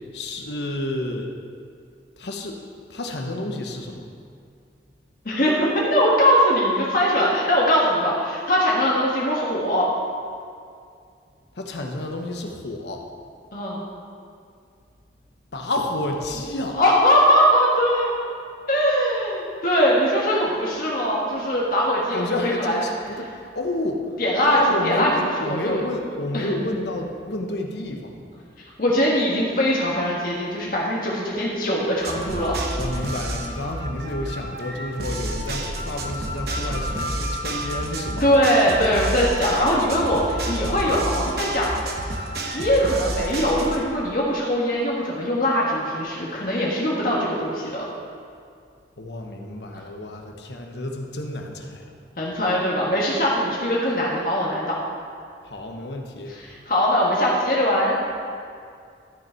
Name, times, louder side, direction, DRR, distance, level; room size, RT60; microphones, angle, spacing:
voice 1, 0.1-1.3 2.2-4.0 11.5-13.0 15.5-16.8 22.1-24.2 24.5-28.2 32.8-38.3 49.0-51.9 55.4-56.3, left 1 dB, 80° left, 2 dB, 1.1 m, -30 dB
voice 2, 5.2-9.9 13.5-13.8 16.8-18.1 18.7-22.8 24.2-25.1 25.5-25.8 26.3-26.5 28.8-32.6 38.2-42.1 42.5-47.8 49.7-49.8 52.2-54.8 56.3-58.0, equal, 50° left, -4 dB, 1.4 m, -21 dB
sound 1, 32.0-43.8, right 1 dB, 60° right, 0.9 m, -30 dB
13.0 x 6.3 x 4.5 m, 2.3 s
head